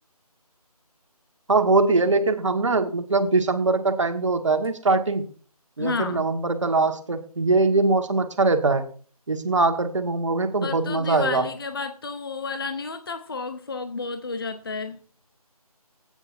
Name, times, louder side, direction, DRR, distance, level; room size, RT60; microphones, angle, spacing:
voice 1, 1.5-5.3 5.8-8.9 9.3-11.4, right 3 dB, 50° right, 7 dB, 1.5 m, -22 dB
voice 2, 5.8-6.2 10.6-15.0, left 4 dB, 35° left, 9 dB, 0.7 m, -31 dB
17.5 x 9.0 x 2.6 m, 0.41 s
figure-of-eight pair, 160°, 20 cm